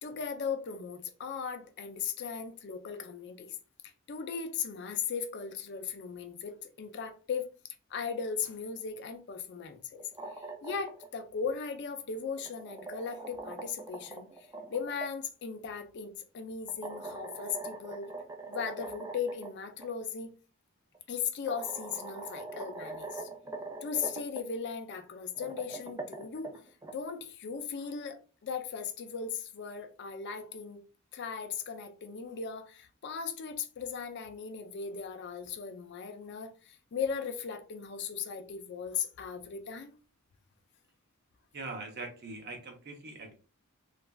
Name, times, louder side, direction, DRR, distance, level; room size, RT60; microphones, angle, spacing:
voice 1, 0.0-3.6 3.8-7.5 7.9-10.0 10.6-14.3 14.7-18.1 18.5-20.3 21.1-23.3 23.8-26.6 26.9-30.8 31.1-39.9, left 6 dB, 55° left, 0.4 m, -37 dB
sound 1, 9.9-11.1 12.2-15.1 16.7-19.5 19.8-19.9 20.9-21.0 21.5-24.4 25.2-26.9, right 2 dB, 15° right, 0.4 m, -42 dB
voice 2, 41.5-43.3, right 3 dB, 50° right, 0.8 m, -42 dB
3.1 x 2.4 x 2.2 m
head